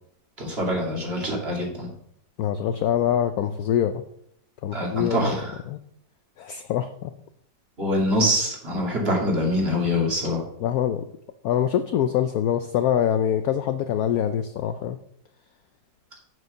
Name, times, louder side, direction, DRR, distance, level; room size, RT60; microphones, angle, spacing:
voice 1, 0.4-1.9 4.7-5.6 7.8-10.4, left 1 dB, 35° right, -1 dB, 2.6 m, -24 dB
voice 2, 2.4-4.0 4.6-5.3 5.7-5.8 6.4-7.1 10.6-11.0 11.4-15.0, left 9 dB, 70° left, 9 dB, 0.9 m, -24 dB
7.2 x 6.1 x 6.5 m, 0.72 s
omnidirectional pair, 1.9 m